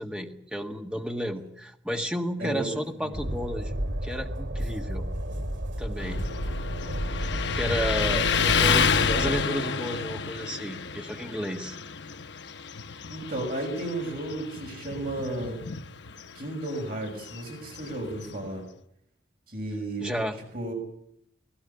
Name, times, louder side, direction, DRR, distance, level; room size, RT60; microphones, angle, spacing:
voice 1, 0.0-3.7 4.0-5.1 5.8-6.2 7.5-11.8 20.0-20.4, equal, 5° right, 3 dB, 1.7 m, -32 dB
voice 2, 2.4-3.1 13.1-15.6 16.3-18.6 19.5-20.1 20.5-20.8, right 1 dB, 50° right, 1 dB, 6.4 m, -33 dB
Train, 3.1-9.4, equal, 90° right, 3.2 m, -32 dB
Motorcycle, 6.0-18.6, left 6 dB, 65° left, 0.8 m, -30 dB
19.5 x 17.0 x 10.0 m, 0.72 s
head